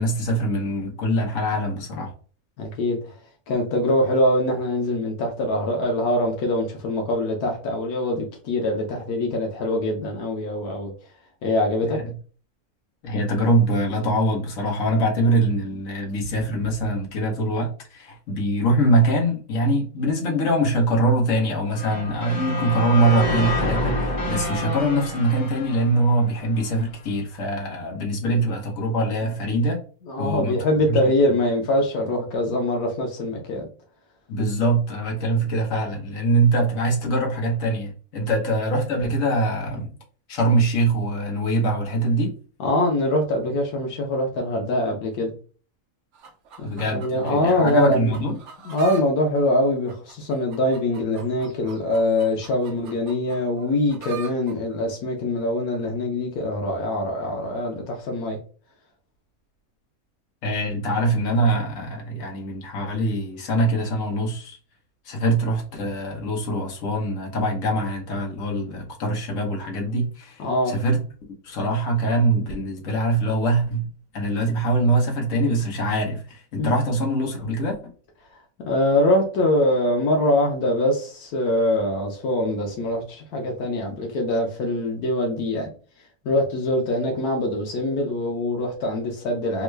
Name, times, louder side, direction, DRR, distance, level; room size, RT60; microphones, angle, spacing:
voice 1, 0.0-2.1 11.8-12.1 13.0-29.8 30.2-30.5 30.9-31.0 34.3-39.9 40.3-42.4 46.6-48.4 60.4-64.6 65.0-71.0 71.4-73.9 74.1-77.9, right 1 dB, 65° left, 1.4 m, -23 dB
voice 2, 2.6-3.1 3.5-10.9 11.4-12.0 28.2-28.3 30.1-33.7 42.6-45.3 46.9-48.1 48.6-58.4 70.4-70.7 76.6-76.7 78.6-85.7 86.2-89.6, left 1 dB, 85° left, 1.2 m, -23 dB
sound 1, 21.7-26.8, left 1 dB, 35° left, 1.0 m, -28 dB
sound 2, 46.1-49.0 49.4-54.5 55.3-55.4, right 5 dB, 60° right, 0.9 m, -43 dB
3.6 x 2.2 x 3.1 m
omnidirectional pair, 1.5 m